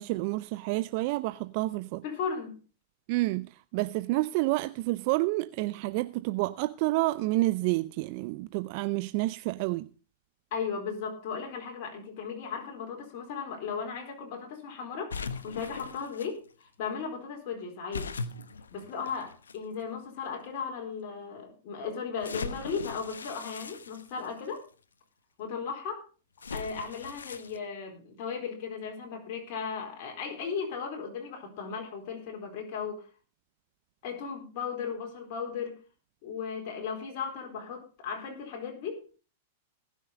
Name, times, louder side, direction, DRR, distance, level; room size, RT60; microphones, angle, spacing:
voice 1, 0.0-2.0 3.1-9.9, right 20 dB, 50° right, 0.5 m, -29 dB
voice 2, 2.0-2.6 10.5-18.1 18.7-24.7 25.4-26.1 26.5-33.1 34.0-35.8 36.2-39.0, left 6 dB, 50° left, 4.3 m, -36 dB
sound 1, 15.1-16.3 17.9-19.6 20.3-20.4 22.2-24.6 26.4-27.6, left 4 dB, 85° left, 1.0 m, -39 dB
19.0 x 6.5 x 5.2 m
hypercardioid pair, 105°, 0 cm